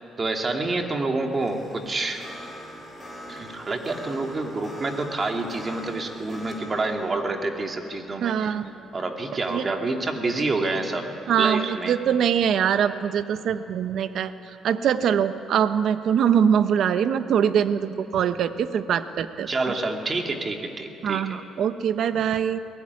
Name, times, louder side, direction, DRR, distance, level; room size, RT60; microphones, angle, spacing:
voice 1, 0.2-2.2 3.3-8.5 8.9-11.1 11.4-12.0 19.5-21.4, right 3 dB, 35° right, 3 dB, 2.7 m, -28 dB
sound 1, 1.3-10.6, equal, 15° right, 6.1 m, -43 dB
voice 2, 8.2-8.7 9.5-9.6 11.3-14.3 14.6-19.5 21.0-22.6, right 8 dB, 65° right, 11 dB, 0.9 m, -23 dB
21.5 x 19.5 x 9.7 m, 2.8 s
cardioid pair, 95°, 0 cm